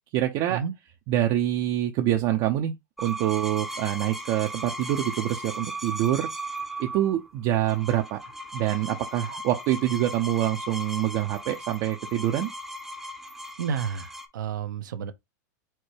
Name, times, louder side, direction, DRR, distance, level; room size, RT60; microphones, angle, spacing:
voice 1, 0.1-0.6 1.1-6.3 6.8-8.2 8.5-12.5, right 13 dB, 45° right, 0.6 m, -26 dB
sound 1, 3.0-14.3, right 1 dB, ahead, 0.7 m, -37 dB
voice 2, 13.6-15.1, right 7 dB, 85° right, 0.8 m, -31 dB
4.4 x 2.1 x 4.7 m
supercardioid pair, 125°, 10 cm